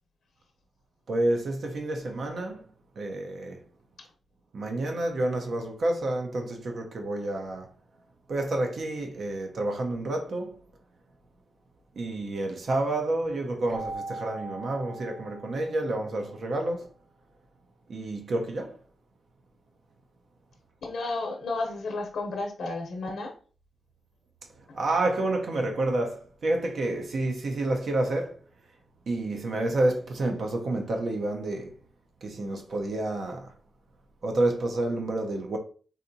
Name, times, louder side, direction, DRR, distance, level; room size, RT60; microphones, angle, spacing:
voice 1, 1.1-2.7 3.0-3.6 4.5-7.7 8.3-10.5 12.0-16.9 17.9-18.8 24.7-28.4 29.1-31.7 32.2-33.5 34.2-35.6, right 2 dB, 65° right, 0.6 m, -29 dB
Keyboard (musical), 13.7-16.3, right 3 dB, 50° right, 1.9 m, -40 dB
voice 2, 20.8-23.3, left 3 dB, 85° left, 0.7 m, -32 dB
4.1 x 2.5 x 2.6 m
wide cardioid pair, 105°, 0 cm